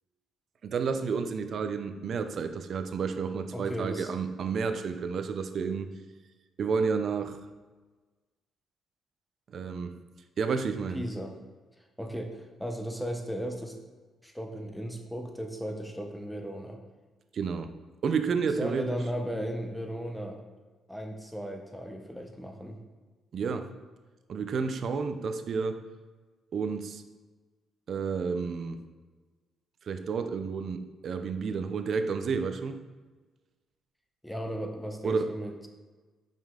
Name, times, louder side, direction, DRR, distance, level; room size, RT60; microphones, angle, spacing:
voice 1, 0.6-5.9 6.6-7.4 9.5-9.9 10.4-11.0 17.3-17.7 18.0-18.8 23.3-23.7 24.3-25.8 26.5-27.0 27.9-28.8 29.9-32.8 35.0-35.3, right 5 dB, 55° right, 9 dB, 0.5 m, -30 dB
voice 2, 3.5-4.1 10.9-11.4 11.8-13.8 14.2-16.8 18.6-20.4 20.9-22.8 34.2-35.7, equal, 5° left, 4 dB, 0.8 m, -36 dB
5.4 x 5.3 x 3.7 m, 1.3 s
cardioid pair, 90°, 0 cm